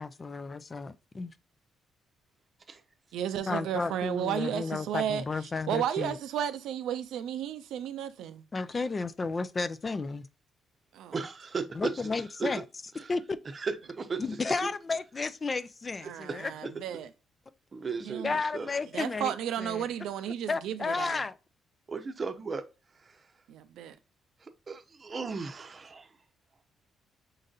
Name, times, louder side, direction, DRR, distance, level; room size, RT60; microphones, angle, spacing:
voice 1, 0.0-1.3 3.5-6.2 8.5-10.3 11.7-12.6 13.1-13.4 14.2-16.5 18.0-19.9 20.5-21.4, left 4 dB, 30° left, 0.4 m, -33 dB
voice 2, 3.1-5.2 5.7-8.4 10.9-11.1 16.0-17.1 18.0-18.4 18.9-21.2 23.5-23.9, right 10 dB, 85° right, 0.5 m, -33 dB
voice 3, 11.1-11.9 12.4-12.5 13.0-13.1 13.5-14.2 14.6-14.7 17.7-18.2 18.5-18.7 21.9-22.6 23.1-23.2 24.4-26.1, right 4 dB, 35° right, 0.7 m, -35 dB
5.4 x 3.9 x 2.5 m
cardioid pair, 90°, 0 cm